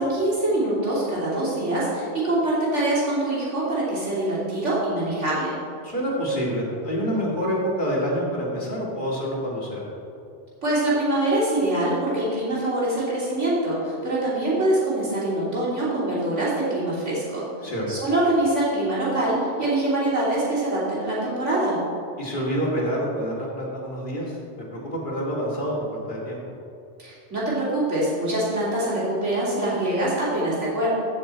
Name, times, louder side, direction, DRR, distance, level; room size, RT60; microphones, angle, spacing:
voice 1, 0.0-5.5 10.6-21.8 27.0-30.9, right 1 dB, 90° right, -7 dB, 3.4 m, -24 dB
voice 2, 5.8-9.9 17.6-17.8 22.2-26.4, equal, 45° left, -4 dB, 2.4 m, -27 dB
14.5 x 6.4 x 4.4 m, 2.6 s
omnidirectional pair, 1.2 m